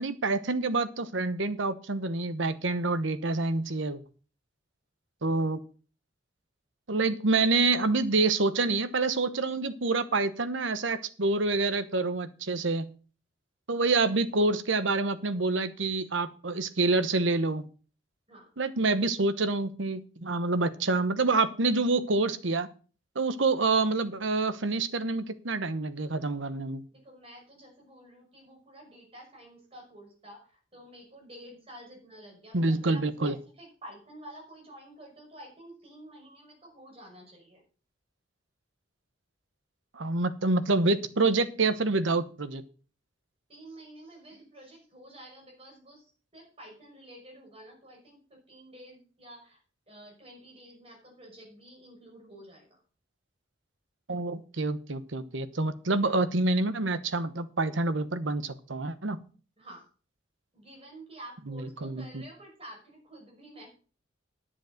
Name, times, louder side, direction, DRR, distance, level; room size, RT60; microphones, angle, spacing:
voice 1, 0.0-4.0 5.2-5.6 6.9-12.9 13.7-17.6 18.6-22.7 23.1-26.8 32.5-33.3 40.0-42.6 54.1-59.2 61.5-62.2, right 3 dB, 70° right, 12 dB, 1.0 m, -27 dB
voice 2, 26.9-37.6 43.5-49.6 49.9-52.8 59.6-59.9 60.5-63.7, right 1 dB, 30° right, 0 dB, 5.8 m, -50 dB
11.0 x 7.3 x 6.5 m, 0.39 s
head